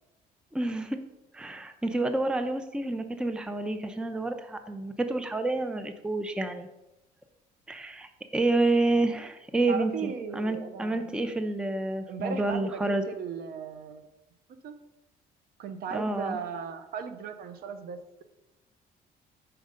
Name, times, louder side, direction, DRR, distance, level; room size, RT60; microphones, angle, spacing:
voice 1, 0.5-1.0 1.3-6.7 7.7-13.0 15.9-16.4, right 2 dB, 5° right, 8 dB, 0.5 m, -29 dB
voice 2, 9.7-11.1 12.1-14.0 14.6-14.7 15.6-18.2, right 6 dB, 65° right, 9 dB, 0.7 m, -37 dB
5.4 x 4.5 x 5.0 m, 0.95 s
cardioid pair, 110°, 17 cm